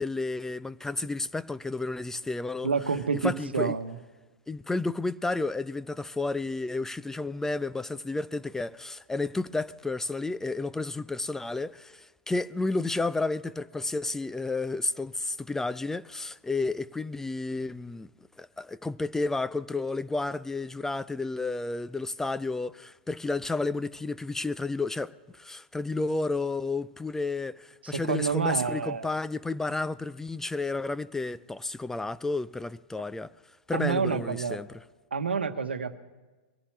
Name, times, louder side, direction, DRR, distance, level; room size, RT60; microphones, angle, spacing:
voice 1, 0.0-2.7 3.1-3.8 4.5-18.1 18.4-33.3 33.7-34.7, left 3 dB, 5° left, 0.3 m, -31 dB
voice 2, 2.6-3.9 27.8-29.1 33.7-34.6 35.1-36.0, right 5 dB, 85° right, 1.0 m, -28 dB
22.5 x 14.5 x 3.3 m
hypercardioid pair, 105°, 6 cm